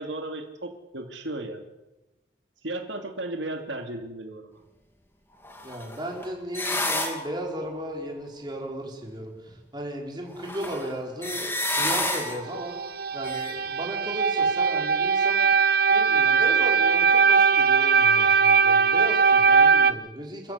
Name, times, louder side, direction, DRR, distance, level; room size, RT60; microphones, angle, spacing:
voice 1, 0.0-1.6 2.6-4.6, right 2 dB, 85° right, 4 dB, 2.5 m, -35 dB
sound 1, 5.4-7.8 9.5-9.6 10.4-12.6 13.2-13.5, left 1 dB, 10° left, 2.5 m, -30 dB
voice 2, 5.6-12.8 13.1-15.5 15.9-20.5, right 1 dB, 25° right, 0 dB, 4.9 m, -35 dB
sound 2, 12.5-19.9, right 5 dB, 55° right, 1.1 m, -20 dB
28.5 x 14.0 x 8.4 m, 1.0 s
head